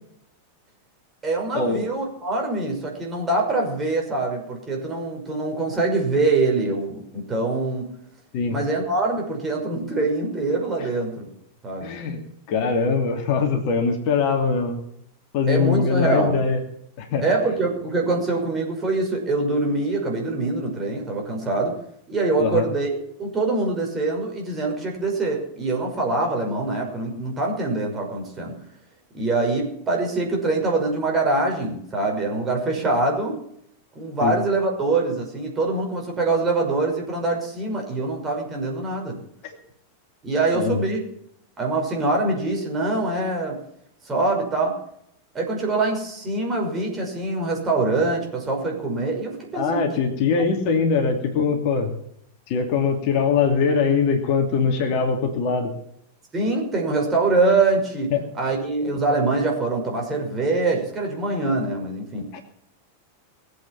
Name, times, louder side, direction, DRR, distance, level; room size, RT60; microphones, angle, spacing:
voice 1, 1.2-7.9 8.5-11.3 11.6-12.0 15.5-16.3 17.2-21.7 22.1-22.9 23.2-28.6 29.1-33.4 33.9-39.2 40.2-41.0 41.6-43.6 44.0-44.8 45.3-49.8 56.3-62.3, right 3 dB, 20° right, 1 dB, 5.9 m, -24 dB
voice 2, 11.8-12.2 12.5-14.8 15.3-16.6 17.0-17.2 22.4-22.7 34.2-34.3 39.4-39.6 40.5-40.8 49.5-51.9 52.5-55.7 58.1-58.2 62.3-62.4, left 5 dB, 45° left, 4 dB, 2.8 m, -22 dB
21.0 x 8.5 x 7.2 m, 0.72 s
figure-of-eight pair, 90°, 0 cm